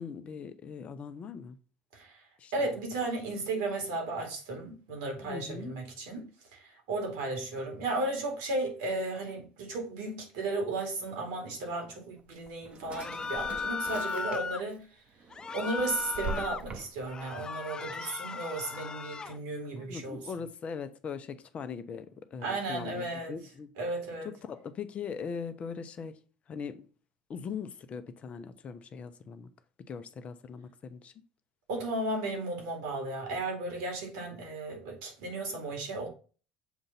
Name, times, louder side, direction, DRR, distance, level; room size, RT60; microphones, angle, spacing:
voice 1, 0.0-1.6 2.4-2.5 5.2-5.7 19.8-23.7 24.2-26.2 26.5-26.9 27.3-29.5 29.9-31.1, left 6 dB, 40° left, 0.8 m, -40 dB
voice 2, 2.5-14.9 15.5-20.2 22.4-23.3 23.8-24.3 31.7-36.1, right 2 dB, 85° right, 2.5 m, -34 dB
Drawer open or close, 12.2-14.8 15.2-17.2, right 3 dB, 35° right, 1.0 m, -42 dB
sound 1, 12.9-14.6 15.3-16.6 17.1-19.4, left 5 dB, 25° left, 0.3 m, -37 dB
7.1 x 2.6 x 5.7 m
supercardioid pair, 90°, 3 cm